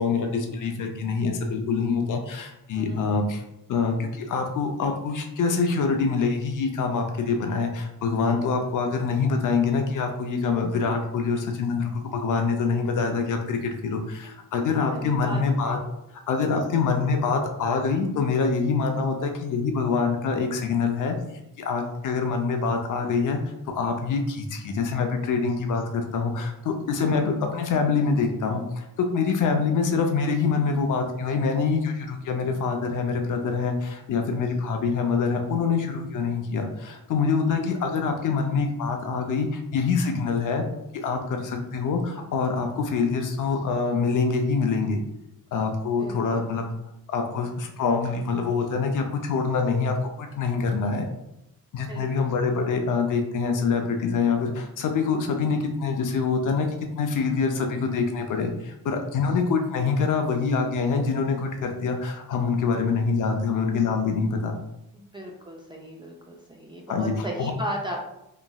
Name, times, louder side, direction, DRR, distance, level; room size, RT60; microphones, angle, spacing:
voice 1, 0.0-3.4 3.7-15.8 16.3-21.1 21.6-40.6 40.9-45.0 45.5-46.7 47.1-51.1 51.7-56.7 57.0-64.6 66.9-67.5, left 5 dB, 55° left, 4 dB, 0.5 m, -25 dB
voice 2, 2.7-3.0 14.9-15.6 37.5-37.7 46.0-46.4 51.9-52.3 64.9-68.0, right 1 dB, 15° right, -2 dB, 0.3 m, -36 dB
3.0 x 2.5 x 2.2 m, 0.85 s
cardioid pair, 100°, 37 cm